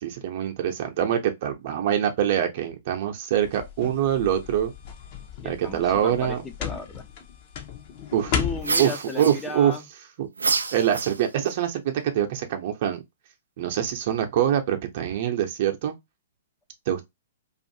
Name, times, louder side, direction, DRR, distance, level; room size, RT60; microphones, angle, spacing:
voice 1, 0.0-4.7 5.4-6.4 8.1-8.4 8.8-8.9 9.2-9.7 10.2-10.3 10.7-13.0 13.6-15.9 16.9-17.0, right 10 dB, 50° right, 0.7 m, -24 dB
sound 1, 3.3-8.8, left 7 dB, 45° left, 0.7 m, -34 dB
voice 2, 5.4-7.0 8.3-9.9, left 3 dB, 15° left, 0.5 m, -35 dB
sound 2, 8.6-9.8 10.4-11.5, right 4 dB, 80° right, 0.3 m, -28 dB
2.5 x 2.5 x 2.6 m
figure-of-eight pair, 115°, 0 cm